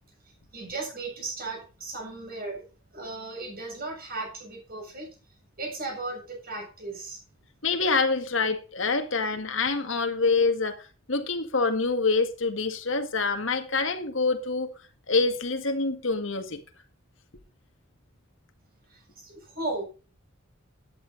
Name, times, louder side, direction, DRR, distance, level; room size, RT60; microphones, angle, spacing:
voice 1, 0.2-2.7 2.9-5.1 5.6-7.2 18.9-19.8, right 2 dB, 50° right, 7.6 m, -36 dB
voice 2, 7.6-10.8 11.1-14.7 15.1-16.6, left 4 dB, 70° left, 1.9 m, -26 dB
13.5 x 10.0 x 4.0 m
head